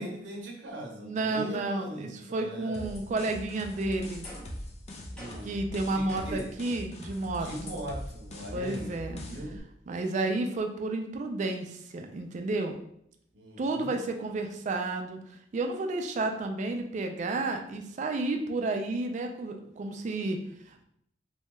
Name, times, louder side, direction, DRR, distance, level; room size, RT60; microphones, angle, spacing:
voice 1, 0.0-2.9 5.1-5.5 5.9-6.5 7.4-9.6 13.3-14.0, right 1 dB, 80° right, 0 dB, 0.6 m, -40 dB
voice 2, 1.0-4.3 5.4-7.5 8.5-9.2 9.9-12.7 13.6-20.8, right 2 dB, 40° right, 5 dB, 0.3 m, -31 dB
sound 1, 2.7-9.6, left 1 dB, 35° left, 0.4 m, -42 dB
sound 2, 4.2-4.7 5.2-5.6 6.1-6.5, equal, 5° left, 0.7 m, -47 dB
2.7 x 2.2 x 3.0 m, 0.72 s
head